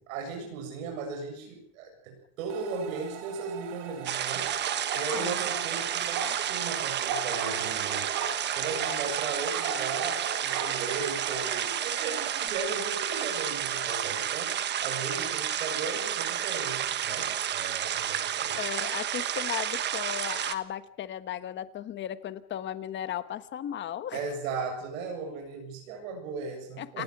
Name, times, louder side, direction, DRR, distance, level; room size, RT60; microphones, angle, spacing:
voice 1, 0.0-4.5 4.9-8.2 8.6-14.6 14.8-18.6 24.1-27.0, right 4 dB, 90° right, 2 dB, 7.7 m, -37 dB
sound 1, 2.5-12.5, right 11 dB, 70° right, 3.3 m, -44 dB
sound 2, 4.0-20.5, right 10 dB, 25° right, 1.3 m, -31 dB
sound 3, 4.5-5.6 6.1-6.4 7.1-8.4 8.8-9.0 9.5-10.7 11.2-11.3, right 5 dB, 45° right, 4.4 m, -36 dB
voice 2, 18.5-24.3 26.8-27.0, left 11 dB, 30° left, 12 dB, 1.2 m, -36 dB
27.5 x 19.0 x 6.1 m, 0.69 s
supercardioid pair, 150°, 39 cm